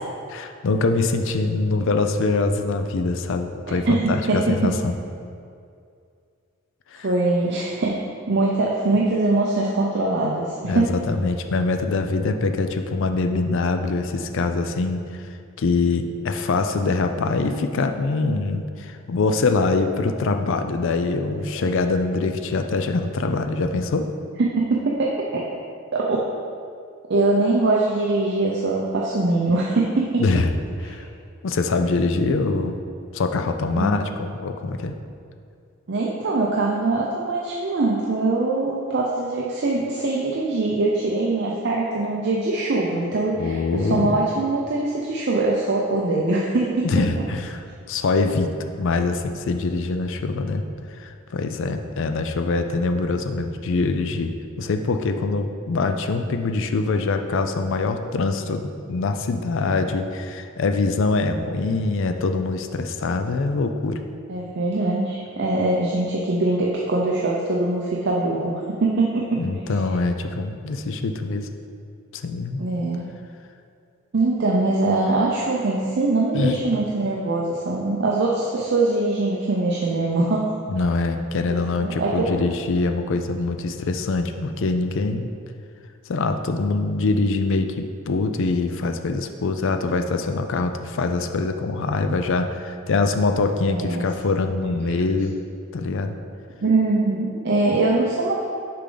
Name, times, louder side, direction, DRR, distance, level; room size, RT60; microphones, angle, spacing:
voice 1, 0.3-5.0 6.9-7.1 10.6-15.3 15.6-24.1 30.2-30.5 30.8-31.1 31.4-32.8 33.1-34.9 43.4-44.2 46.8-47.6 47.9-50.6 50.9-54.3 54.6-64.0 69.4-71.5 72.1-72.6 76.3-76.6 80.7-85.3 86.1-95.3 95.7-96.2, left 3 dB, 60° left, 7 dB, 0.4 m, -24 dB
voice 2, 3.9-4.7 7.0-8.0 8.3-10.9 24.4-24.5 25.0-25.1 25.9-26.2 27.1-30.2 33.8-34.1 35.9-46.9 64.3-69.4 72.6-73.1 74.1-80.5 81.5-81.6 82.0-82.4 93.7-94.1 96.6-98.4, right 2 dB, 55° right, -3 dB, 0.6 m, -22 dB
6.7 x 4.9 x 3.9 m, 2.4 s
head